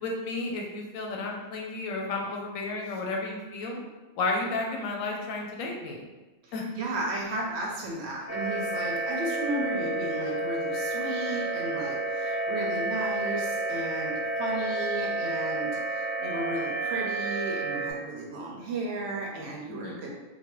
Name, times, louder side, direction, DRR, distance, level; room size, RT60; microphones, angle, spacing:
voice 1, 0.0-3.8 4.2-6.0 6.5-6.6 19.7-20.1, left 3 dB, 80° left, 0 dB, 1.0 m, -32 dB
voice 2, 6.4-20.1, right 1 dB, 65° right, -2 dB, 0.8 m, -34 dB
sound 1, 8.3-17.9, right 2 dB, 50° left, 1.5 m, -30 dB
3.1 x 2.2 x 3.0 m, 1.2 s
omnidirectional pair, 1.4 m